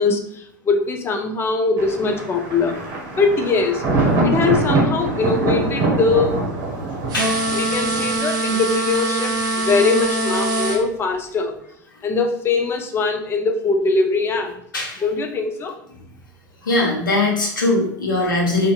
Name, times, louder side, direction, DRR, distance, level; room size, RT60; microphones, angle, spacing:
voice 1, 0.0-2.7 3.1-3.8 4.2-6.5 7.5-11.6 12.0-14.5 15.0-15.8, left 3 dB, 20° left, 5 dB, 0.4 m, -21 dB
Thunder, 1.8-8.2, right 2 dB, 55° right, 0.9 m, -23 dB
voice 2, 7.1-7.5 14.7-15.0 16.7-18.7, left 2 dB, 80° left, -2 dB, 0.8 m, -20 dB
sound 1, 7.1-10.8, right 2 dB, 35° right, 0.4 m, -23 dB
2.5 x 2.5 x 2.4 m, 0.70 s
hypercardioid pair, 90°, 11 cm